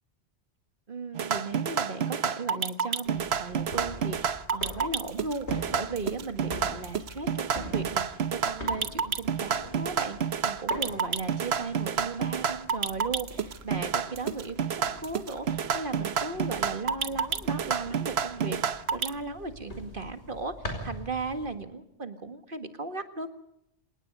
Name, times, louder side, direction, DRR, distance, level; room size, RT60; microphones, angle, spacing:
voice 1, 0.9-10.2 10.4-20.5 20.8-23.3, right 3 dB, 50° right, 7 dB, 2.0 m, -36 dB
sound 1, 1.1-19.1, right 7 dB, 70° right, 1.2 m, -29 dB
sound 2, 3.1-21.6, left 1 dB, 80° left, 5.0 m, -44 dB
27.0 x 18.5 x 5.4 m, 0.79 s
omnidirectional pair, 1.1 m